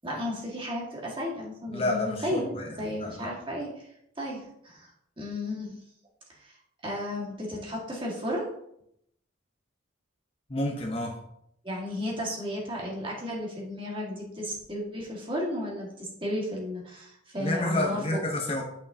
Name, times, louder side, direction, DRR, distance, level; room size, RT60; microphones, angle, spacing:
voice 1, 0.0-3.9 4.2-4.9 5.2-5.7 6.3-6.5 6.8-8.5 11.6-18.2, left 1 dB, 25° right, -3 dB, 1.6 m, -33 dB
voice 2, 1.7-3.3 10.5-11.2 17.4-18.6, left 1 dB, 30° left, 1 dB, 0.8 m, -30 dB
9.1 x 5.5 x 2.7 m, 0.76 s
head